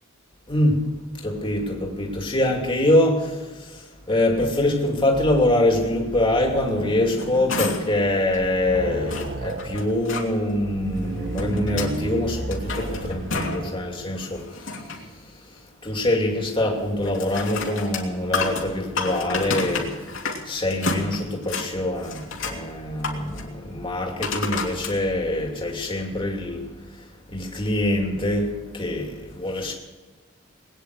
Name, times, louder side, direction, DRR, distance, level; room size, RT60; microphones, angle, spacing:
voice 1, 0.5-14.7 15.8-20.0 20.4-26.7 27.3-29.7, left 1 dB, 25° left, 2.8 m, -24 dB
sound 1, 6.2-7.7 8.0-8.1 8.4-9.9 10.6-13.7, right 2 dB, 50° right, 0.9 m, -33 dB
sound 2, 6.9-8.0 8.3-8.4 9.1-10.3 11.0-12.0 12.4-13.7 14.1-15.1 17.0-20.4 20.7-21.7 22.0-22.6 23.0-23.5 24.2-24.9 25.6-25.7, left 4 dB, 70° left, 2.9 m, -30 dB
21.0 x 10.0 x 6.6 m
head